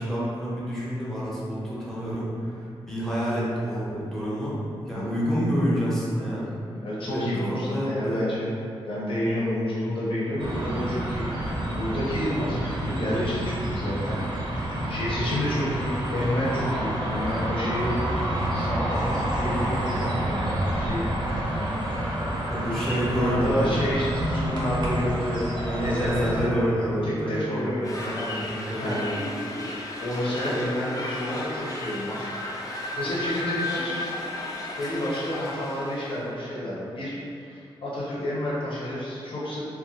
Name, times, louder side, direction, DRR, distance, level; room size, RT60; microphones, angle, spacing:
voice 1, 0.0-6.5 7.0-8.2 22.5-23.7 25.6-29.2, equal, 5° left, -8 dB, 0.7 m, -28 dB
voice 2, 6.7-8.5 8.9-19.1 19.4-21.1 22.6-29.0 30.0-34.1 34.8-39.6, equal, 60° left, -7 dB, 0.7 m, -30 dB
sound 1, 10.4-26.4, right 1 dB, 50° right, 0.6 m, -28 dB
sound 2, 27.8-36.2, left 2 dB, 35° left, 0.4 m, -34 dB
2.2 x 2.2 x 2.7 m, 2.4 s
wide cardioid pair, 90°, 10 cm